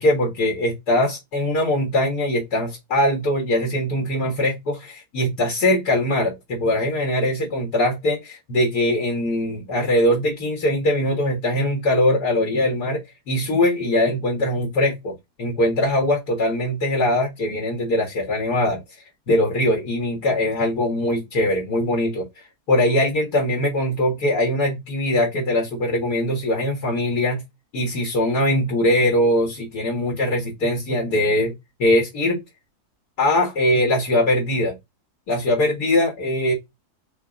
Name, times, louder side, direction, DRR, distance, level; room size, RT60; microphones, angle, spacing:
voice 1, 0.0-13.0 13.3-18.8 19.3-22.2 22.7-27.4 27.7-31.5 31.8-32.4 33.2-34.7 35.3-36.5, left 1 dB, 80° left, 2.2 m, -21 dB
5.7 x 2.5 x 3.7 m
omnidirectional pair, 1.7 m